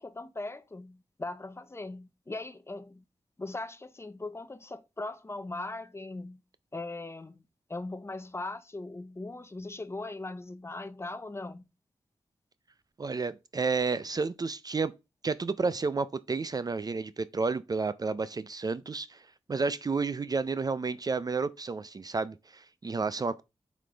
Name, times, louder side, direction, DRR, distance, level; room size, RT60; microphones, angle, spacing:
voice 1, 0.0-3.0 3.4-6.4 6.7-7.4 7.7-11.6, left 2 dB, 25° left, 0.6 m, -39 dB
voice 2, 13.0-14.9 15.2-23.4, right 4 dB, 35° right, 0.4 m, -31 dB
9.0 x 5.1 x 3.3 m
wide cardioid pair, 130°, 11 cm